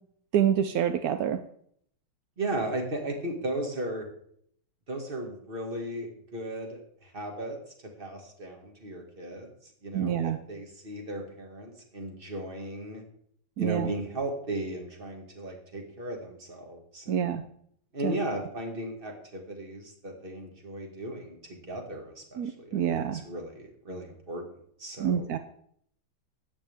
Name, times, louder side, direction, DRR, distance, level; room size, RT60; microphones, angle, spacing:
voice 1, 0.3-1.4 9.9-10.4 13.6-13.9 17.1-17.4 18.0-18.1 22.4-23.2 25.0-25.4, right 9 dB, 70° right, 9 dB, 0.8 m, -27 dB
voice 2, 2.4-4.1 4.9-7.6 8.0-9.5 9.8-13.0 13.6-17.4 17.9-24.5 24.8-25.3, right 1 dB, 25° right, 2 dB, 2.0 m, -36 dB
13.5 x 9.2 x 3.5 m, 0.65 s
omnidirectional pair, 2.2 m